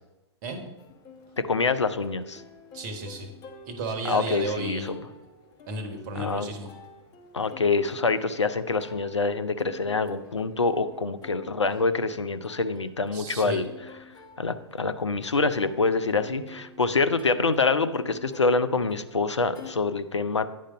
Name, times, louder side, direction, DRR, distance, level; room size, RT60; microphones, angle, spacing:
Plucked string instrument, 0.8-19.7, left 3 dB, 25° left, 1.1 m, -49 dB
voice 1, 1.4-2.4 4.0-5.0 6.1-6.5 7.3-13.7 14.4-20.5, left 4 dB, 80° left, 12 dB, 0.5 m, -26 dB
voice 2, 2.7-3.3 3.7-5.0 5.7-6.7 13.1-13.6, right 2 dB, 40° right, 6 dB, 1.3 m, -33 dB
9.3 x 5.0 x 5.2 m, 1.0 s
figure-of-eight pair, 105°, 15 cm